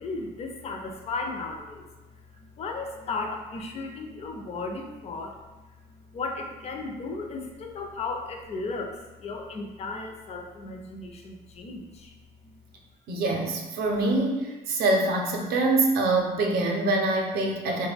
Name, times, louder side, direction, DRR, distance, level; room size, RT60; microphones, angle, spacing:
voice 1, 0.0-1.9 2.4-5.4 5.9-12.2, left 3 dB, 40° left, 3 dB, 0.4 m, -35 dB
voice 2, 13.1-17.9, right 2 dB, 65° right, 1 dB, 0.5 m, -25 dB
2.2 x 2.1 x 3.3 m, 1.1 s
cardioid pair, 110°, 17 cm